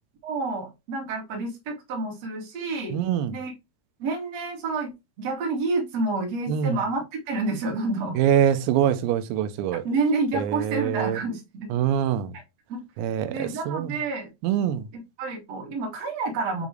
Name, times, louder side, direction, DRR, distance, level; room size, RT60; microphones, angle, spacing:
voice 1, 0.2-3.0 3.3-3.5 4.0-4.9 5.2-8.2 9.8-11.7 12.7-12.8 13.3-14.3 14.9-16.7, right 3 dB, 40° right, 2.7 m, -29 dB
voice 2, 2.9-3.3 6.5-6.8 8.2-9.8 10.3-11.2 11.7-12.3 13.0-13.9 14.4-14.9, right 10 dB, 90° right, 3.6 m, -24 dB
9.5 x 4.1 x 3.2 m
omnidirectional pair, 6.0 m